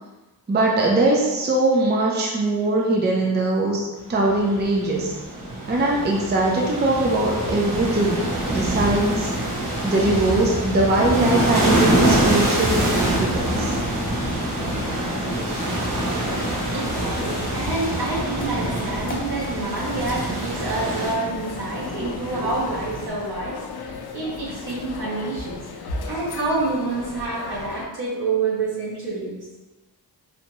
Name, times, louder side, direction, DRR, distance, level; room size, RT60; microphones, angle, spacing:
voice 1, 0.5-5.1 5.7-9.3 9.8-13.7, right 2 dB, 25° right, -1 dB, 0.4 m, -21 dB
sound 1, 4.2-21.1, right 1 dB, 55° right, 1.0 m, -25 dB
sound 2, 8.1-23.1, left 1 dB, 25° left, 0.6 m, -37 dB
sound 3, 16.2-27.9, left 5 dB, 75° left, 0.5 m, -37 dB
voice 2, 16.7-29.4, right 3 dB, 75° right, -7 dB, 1.5 m, -28 dB
4.3 x 2.7 x 3.0 m, 1.1 s
wide cardioid pair, 170°, 38 cm